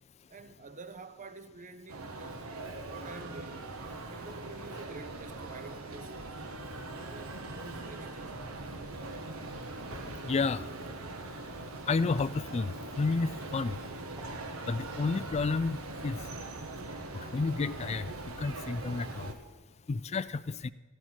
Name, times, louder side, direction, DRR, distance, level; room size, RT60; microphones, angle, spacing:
voice 1, 0.0-2.4 2.9-3.7 4.1-6.4 6.9-8.6, right 3 dB, 35° right, 0.7 m, -48 dB
sound 1, 1.9-19.3, right 2 dB, 75° right, 1.4 m, -41 dB
voice 2, 10.3-10.6 11.9-13.8 14.7-16.2 17.3-18.1 18.4-19.3 19.9-20.7, left 4 dB, 30° left, 0.3 m, -31 dB
sound 2, 12.9-15.6, equal, 20° right, 2.0 m, -58 dB
14.0 x 12.5 x 4.5 m
head